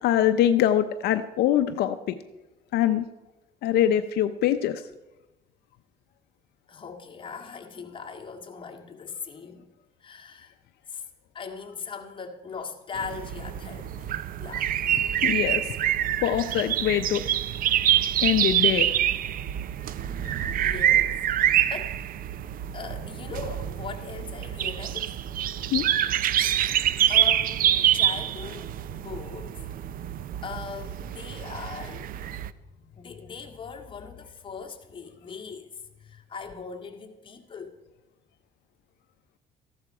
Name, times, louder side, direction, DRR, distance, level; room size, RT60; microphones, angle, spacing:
voice 1, 0.0-2.2 2.7-3.1 3.6-4.8 15.2-15.6 16.2-17.2 18.2-18.9 25.7-25.9, left 11 dB, 75° left, 9 dB, 0.6 m, -23 dB
voice 2, 6.7-9.7 10.0-10.5 10.9-11.0 11.3-14.1 14.4-15.0 20.6-21.2 21.7-22.0 22.7-25.1 26.7-29.6 30.4-32.2 32.7-37.8, left 5 dB, 30° left, 1 dB, 1.9 m, -40 dB
sound 1, 13.0-32.5, right 11 dB, 55° right, 0.6 m, -26 dB
14.5 x 12.0 x 4.8 m, 1.0 s
cardioid pair, 110°, 17 cm